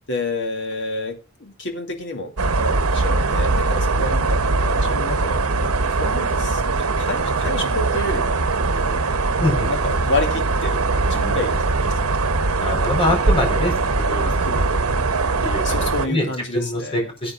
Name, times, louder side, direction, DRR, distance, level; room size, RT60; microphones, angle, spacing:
voice 1, 0.1-6.6 7.0-8.4 9.4-10.8 11.1-12.2 14.2-14.8 15.6-17.1, left 2 dB, 60° left, 4 dB, 2.5 m, -29 dB
sound 1, 2.4-16.1, right 3 dB, 80° right, 1.0 m, -21 dB
voice 2, 9.4-9.7 12.6-13.7 14.1-14.3 15.4-15.6 16.0-16.3 16.5-17.3, left 1 dB, 25° left, 2 dB, 4.7 m, -23 dB
19.0 x 8.6 x 2.5 m, 0.29 s
head